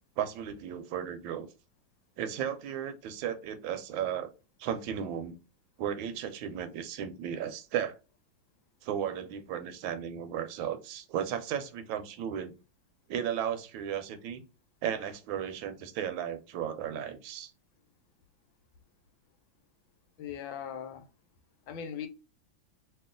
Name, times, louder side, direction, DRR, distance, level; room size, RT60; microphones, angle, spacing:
voice 1, 0.2-1.5 2.2-4.3 4.6-5.4 5.8-8.0 8.8-12.5 13.1-14.4 14.8-17.5, right 9 dB, 85° right, 1.4 m, -35 dB
voice 2, 20.2-21.0 21.7-22.1, left 8 dB, 80° left, 1.4 m, -39 dB
3.0 x 2.7 x 3.6 m
omnidirectional pair, 2.1 m